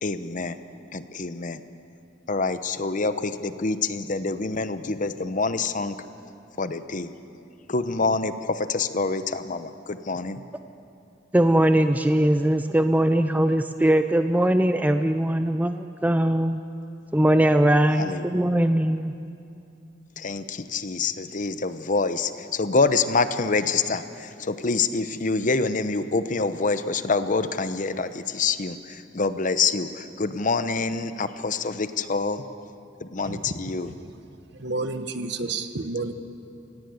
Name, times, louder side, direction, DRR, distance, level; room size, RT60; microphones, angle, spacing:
voice 1, 0.0-0.6 0.9-1.6 2.3-6.0 6.6-7.2 7.7-10.4 18.0-18.4 20.2-32.4 33.0-33.9, left 4 dB, 45° left, 11 dB, 0.9 m, -26 dB
voice 2, 11.3-16.6 17.1-19.1, right 1 dB, 10° right, 8 dB, 0.5 m, -21 dB
voice 3, 34.6-36.1, right 3 dB, 65° right, 9 dB, 1.3 m, -30 dB
28.0 x 17.0 x 7.9 m, 2.6 s
head